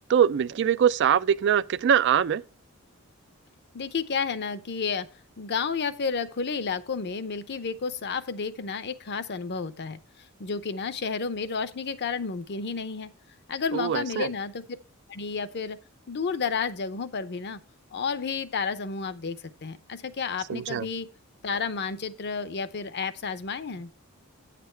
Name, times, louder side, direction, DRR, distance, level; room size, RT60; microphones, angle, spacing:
voice 1, 0.1-2.4 13.7-14.3 20.5-20.9, right 8 dB, 50° right, 0.3 m, -23 dB
voice 2, 3.7-5.1 5.4-10.0 10.4-13.1 13.5-14.6 15.1-15.8 16.1-17.6 17.9-21.1 21.4-23.9, left 5 dB, 50° left, 0.6 m, -31 dB
9.0 x 6.8 x 4.4 m
head